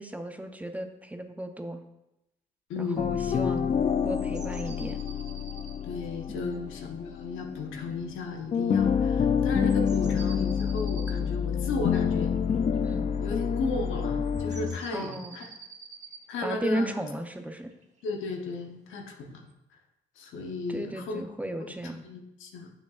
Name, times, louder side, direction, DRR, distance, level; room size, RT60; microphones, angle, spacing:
voice 1, 0.0-1.8 2.8-3.8 4.0-5.0 6.3-6.7 12.8-13.1 14.9-15.4 16.4-17.7 20.7-22.0, right 1 dB, 5° right, 6 dB, 0.6 m, -35 dB
voice 2, 2.7-3.5 5.8-12.3 13.2-15.5 16.3-16.9 18.0-19.5 20.2-21.2 21.6-22.7, left 3 dB, 80° left, 2 dB, 0.9 m, -35 dB
sound 1, 3.0-8.2 8.5-14.8, left 7 dB, 35° left, 0.4 m, -28 dB
sound 2, 4.1-6.2 9.6-12.9 14.2-16.2 17.2-18.4 19.5-19.6, right 4 dB, 35° right, 1.1 m, -48 dB
7.1 x 6.7 x 2.4 m, 0.90 s
cardioid pair, 90°, 20 cm